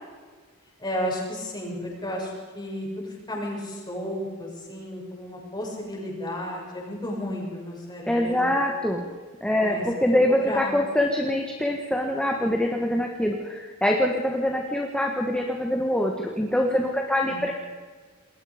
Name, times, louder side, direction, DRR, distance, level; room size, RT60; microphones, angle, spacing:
voice 1, 0.8-8.5 9.6-10.7 17.2-17.4, left 1 dB, 20° left, -2 dB, 6.9 m, -33 dB
voice 2, 8.1-9.1 9.4-17.5, left 1 dB, 5° left, 1 dB, 1.7 m, -24 dB
28.0 x 22.0 x 5.2 m, 1.5 s
head